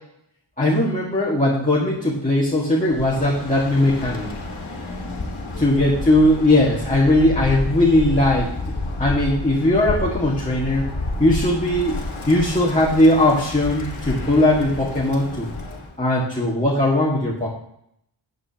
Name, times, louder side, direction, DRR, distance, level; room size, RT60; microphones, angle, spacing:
voice 1, 0.6-4.3 5.6-8.5 9.0-10.9 11.2-12.0 12.3-15.5 16.0-17.5, left 1 dB, 15° left, -6 dB, 1.7 m, -19 dB
Bird, 2.8-15.9, left 2 dB, 85° left, 1.8 m, -30 dB
12.5 x 8.1 x 2.9 m, 0.74 s
wide cardioid pair, 70°, 48 cm